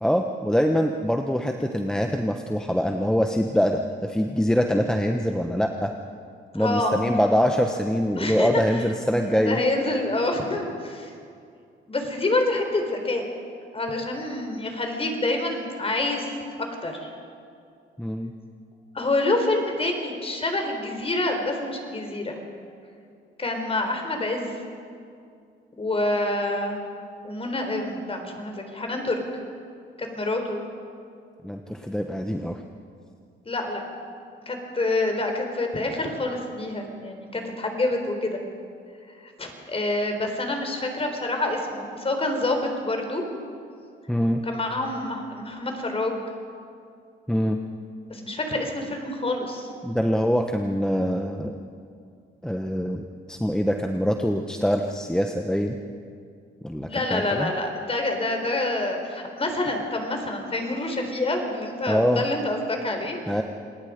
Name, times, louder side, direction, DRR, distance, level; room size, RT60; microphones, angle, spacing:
voice 1, 0.0-5.9 6.5-9.6 18.0-18.3 31.4-32.6 44.1-44.4 47.3-47.6 49.8-51.6 52.4-55.8 56.6-57.5 61.9-62.2 63.3-63.4, equal, 5° left, 4 dB, 1.1 m, -24 dB
voice 2, 6.5-6.9 8.1-8.8 9.3-11.1 11.9-13.2 13.7-16.3 16.8-17.1 18.9-22.4 23.4-24.5 25.8-26.8 27.2-29.2 30.0-30.6 33.5-33.8 34.5-38.4 39.2-43.2 44.4-46.2 48.1-49.7 56.9-63.2, left 2 dB, 30° left, 4 dB, 4.2 m, -27 dB
27.5 x 19.0 x 5.2 m, 2.3 s
cardioid pair, 90°, 20 cm